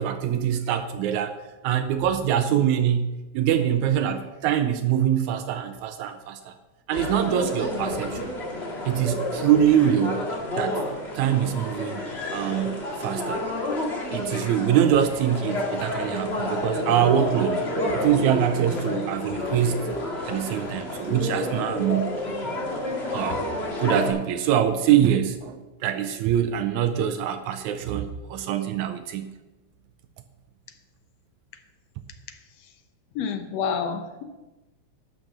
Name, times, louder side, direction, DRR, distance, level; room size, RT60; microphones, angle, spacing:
voice 1, 0.0-1.4 1.6-6.5 6.9-8.3 8.9-10.2 10.6-10.8 11.2-12.0 12.3-13.4 14.1-17.6 17.9-19.8 20.2-22.1 23.1-23.4 23.8-29.3, right 10 dB, 80° right, 8 dB, 2.0 m, -24 dB
sound 1, 6.9-24.1, left 1 dB, 25° left, 1.5 m, -30 dB
voice 2, 33.2-34.2, left 6 dB, 70° left, 8 dB, 1.8 m, -28 dB
12.0 x 7.4 x 6.0 m, 1.1 s
omnidirectional pair, 3.4 m